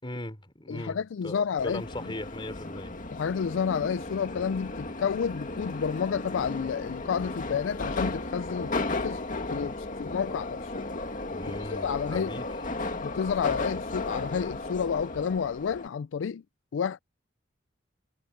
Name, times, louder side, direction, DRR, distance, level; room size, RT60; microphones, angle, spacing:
voice 1, 0.0-2.9 11.3-12.5, left 1 dB, 25° left, 3.9 m, -38 dB
voice 2, 0.7-1.8 3.1-9.2 9.5-10.7 11.7-12.3 13.0-16.4 16.7-17.0, left 7 dB, 80° left, 0.4 m, -30 dB
Subway metro underground, 1.6-15.9, left 2 dB, 45° left, 2.3 m, -35 dB
head